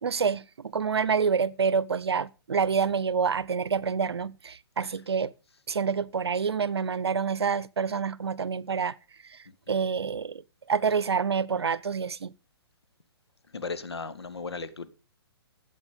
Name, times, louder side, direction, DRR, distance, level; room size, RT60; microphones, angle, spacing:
voice 1, 0.0-5.3 5.7-8.9 9.2-12.3, right 6 dB, 80° right, 0.7 m, -27 dB
voice 2, 13.5-14.9, left 4 dB, 85° left, 1.6 m, -35 dB
12.5 x 7.9 x 5.1 m
hypercardioid pair, 135°, 13 cm